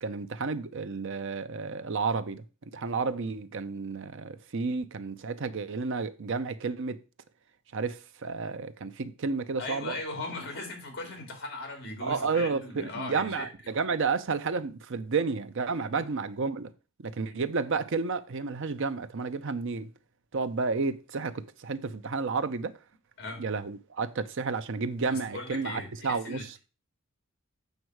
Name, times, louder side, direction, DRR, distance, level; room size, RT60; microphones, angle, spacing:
voice 1, 0.0-2.4 2.7-7.0 7.7-10.0 12.0-16.7 17.0-19.9 20.3-22.7 23.4-26.5, right 4 dB, 60° right, 0.6 m, -31 dB
voice 2, 9.6-13.5 17.3-17.4 23.2-23.4 25.1-26.6, left 2 dB, 50° left, 2.5 m, -38 dB
7.9 x 5.3 x 4.7 m
head